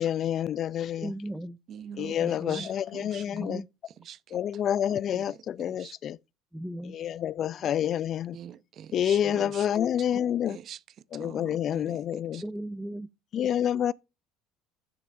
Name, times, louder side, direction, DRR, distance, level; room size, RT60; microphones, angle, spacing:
voice 1, 0.0-1.1 2.0-3.6 4.3-6.2 6.9-8.4 8.9-10.6 11.1-12.4 13.3-13.9, left 10 dB, 50° left, 0.3 m, -28 dB
voice 2, 1.0-1.6 2.2-2.7 3.3-3.7 6.5-7.0 7.6-7.7 12.4-13.1, right 1 dB, 5° right, 0.5 m, -37 dB
voice 3, 1.7-3.6 4.0-4.4 4.9-5.4 5.6-5.9 8.3-9.7 10.1-10.2 10.5-10.8 11.1-12.0 12.3-12.4, right 9 dB, 50° right, 0.6 m, -45 dB
10.5 x 6.6 x 2.6 m
supercardioid pair, 90°, 0 cm